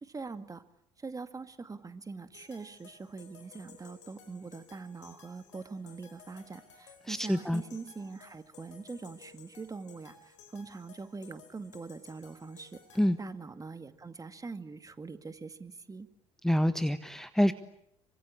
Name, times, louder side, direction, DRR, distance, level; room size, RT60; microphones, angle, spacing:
voice 1, 0.0-0.6 1.0-16.1, right 4 dB, 25° right, 11 dB, 2.2 m, -43 dB
sound 1, 2.3-13.1, left 5 dB, 80° left, 4.9 m, -57 dB
voice 2, 7.1-7.6 13.0-13.2 16.4-17.5, equal, 5° left, 11 dB, 1.4 m, -26 dB
27.5 x 25.0 x 8.7 m, 0.72 s
hypercardioid pair, 60°, 15 cm